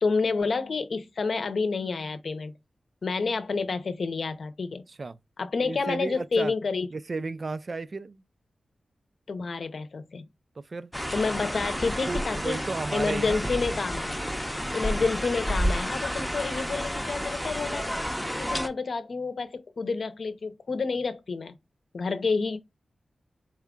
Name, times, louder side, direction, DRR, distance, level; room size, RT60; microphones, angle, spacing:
voice 1, 0.0-2.5 3.0-4.8 5.4-6.9 9.3-10.2 11.1-12.6 12.9-14.2 14.7-18.0 18.3-21.5 21.9-22.6, left 4 dB, 65° left, 0.7 m, -29 dB
voice 2, 5.6-6.5 6.9-8.2 10.6-10.9 12.1-13.4, right 3 dB, 50° right, 0.3 m, -33 dB
sound 1, 10.9-18.7, equal, ahead, 0.6 m, -30 dB
4.3 x 2.3 x 3.6 m
cardioid pair, 60°, 0 cm